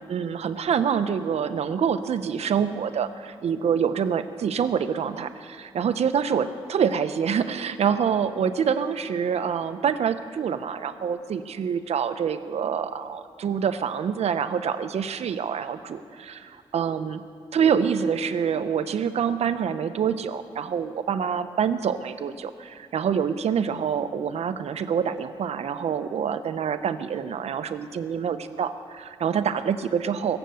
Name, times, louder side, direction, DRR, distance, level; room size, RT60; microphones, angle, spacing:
voice 1, 0.0-17.2 17.5-30.4, right 7 dB, 75° right, 10 dB, 0.8 m, -26 dB
23.0 x 7.9 x 6.9 m, 2.3 s
wide cardioid pair, 110°, 11 cm